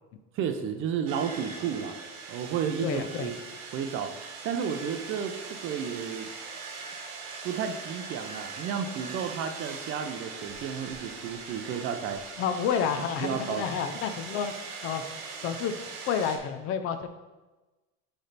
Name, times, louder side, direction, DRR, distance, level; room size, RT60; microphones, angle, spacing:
voice 1, 0.3-2.0 2.3-3.4 3.7-4.1 4.4-6.3 7.4-12.2 13.2-13.7, right 7 dB, 45° right, 7 dB, 0.5 m, -32 dB
sound 1, 1.1-16.4, right 4 dB, 80° right, 1.1 m, -41 dB
voice 2, 2.8-3.3 12.4-14.5 14.8-15.0 15.4-15.7 16.1-17.1, left 7 dB, 50° left, 9 dB, 0.5 m, -29 dB
8.1 x 3.4 x 4.0 m, 1.2 s
cardioid pair, 165°, 30 cm